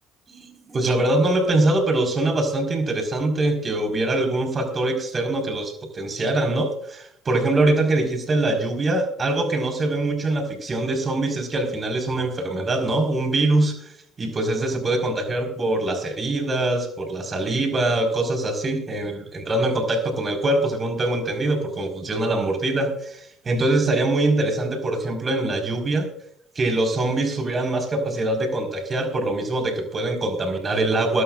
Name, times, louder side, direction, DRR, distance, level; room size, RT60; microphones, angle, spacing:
voice 1, 0.3-13.7 14.2-26.1 26.6-31.2, right 2 dB, 35° right, 4 dB, 4.4 m, -23 dB
21.0 x 13.5 x 2.5 m, 0.71 s
supercardioid pair, 70°, 0 cm